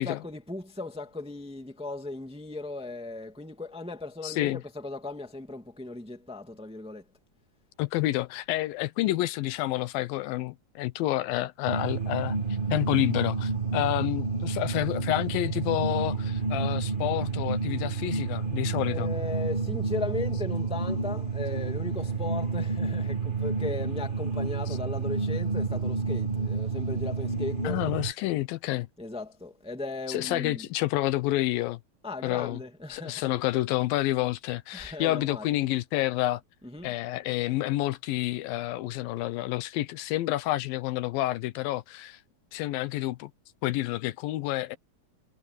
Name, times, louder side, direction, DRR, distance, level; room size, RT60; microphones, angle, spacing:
voice 1, 0.0-7.0 18.8-27.9 29.0-30.7 32.0-33.3 34.7-35.5 36.6-37.0, left 3 dB, ahead, 1.5 m, -37 dB
voice 2, 4.2-4.6 7.8-12.4 12.7-19.1 27.6-28.9 30.1-31.8 32.2-32.6 32.9-36.4 36.8-42.2 42.5-43.3 43.6-44.8, left 16 dB, 80° left, 2.5 m, -29 dB
sound 1, 11.7-28.1, right 4 dB, 90° right, 0.4 m, -30 dB
omnidirectional pair, 4.1 m